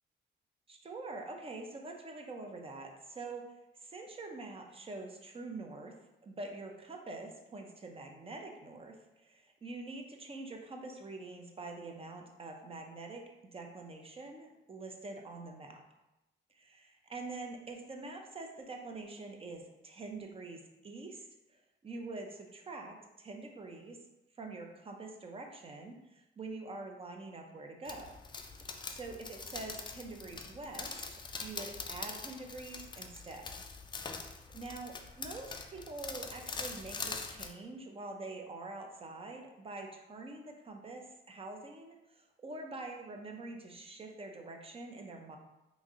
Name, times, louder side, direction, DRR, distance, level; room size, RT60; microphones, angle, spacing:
voice 1, 0.7-3.4 3.8-5.9 6.2-13.2 13.5-15.8 16.5-24.0 24.3-28.2 28.6-31.0 31.4-33.6 34.2-45.4, right 3 dB, 30° right, 3 dB, 0.6 m, -45 dB
sound 1, 27.8-37.5, left 4 dB, 25° left, 0.3 m, -43 dB
3.1 x 2.6 x 3.6 m, 0.97 s
cardioid pair, 90°, 20 cm